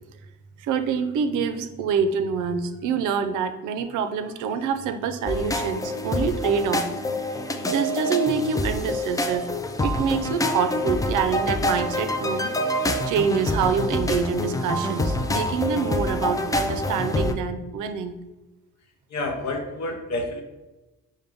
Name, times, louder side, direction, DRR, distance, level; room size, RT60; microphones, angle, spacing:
voice 1, 0.6-6.8 7.6-9.4 9.8-18.2, right 6 dB, 85° right, 8 dB, 0.5 m, -26 dB
sound 1, 5.3-17.3, left 1 dB, 10° left, 0.3 m, -26 dB
voice 2, 19.1-20.4, left 2 dB, 65° left, 3 dB, 0.9 m, -29 dB
5.2 x 2.1 x 3.4 m, 1.1 s
cardioid pair, 90°, 30 cm